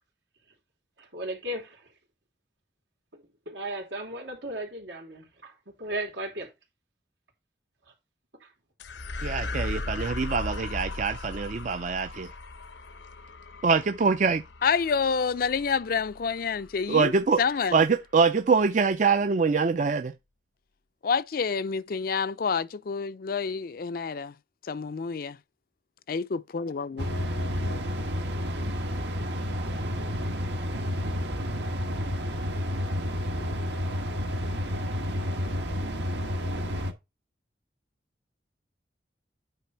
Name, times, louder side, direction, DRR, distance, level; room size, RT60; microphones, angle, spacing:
voice 1, 1.0-1.9 3.1-6.5 7.9-8.0 8.4-8.5, right 1 dB, 90° right, 3.1 m, -36 dB
sound 1, 8.8-17.4, left 2 dB, 85° left, 0.9 m, -38 dB
voice 2, 9.2-12.3 13.6-14.4 16.9-17.4 17.7-20.1, right 5 dB, 45° right, 0.4 m, -24 dB
voice 3, 14.6-17.1 17.4-17.7 21.0-24.3 24.6-25.4 26.1-27.1, left 5 dB, 55° left, 0.4 m, -28 dB
sound 2, 27.0-36.9, equal, 75° right, 1.4 m, -30 dB
9.1 x 3.4 x 5.6 m
head